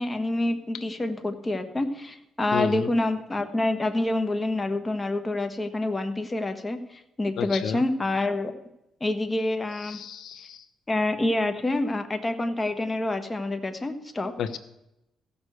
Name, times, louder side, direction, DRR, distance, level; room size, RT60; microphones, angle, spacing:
voice 1, 0.0-8.5 9.0-10.0 10.9-14.3, left 2 dB, 20° left, 7 dB, 1.4 m, -27 dB
voice 2, 2.5-2.9 7.4-7.8 9.9-10.6 14.4-14.6, left 8 dB, 70° left, 11 dB, 1.0 m, -31 dB
15.5 x 6.8 x 6.5 m, 0.87 s
cardioid pair, 90°, 0 cm